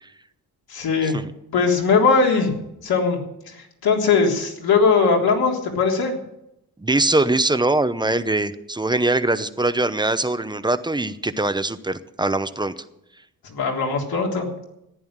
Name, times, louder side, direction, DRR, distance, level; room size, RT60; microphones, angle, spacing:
voice 1, 0.7-1.2 1.5-2.5 2.8-3.2 3.5-6.2 13.4-14.5, left 4 dB, 70° left, 0 dB, 3.6 m, -20 dB
voice 2, 6.8-12.7, right 2 dB, 10° right, 12 dB, 0.7 m, -22 dB
14.5 x 10.5 x 7.4 m, 0.84 s
cardioid pair, 130°, 38 cm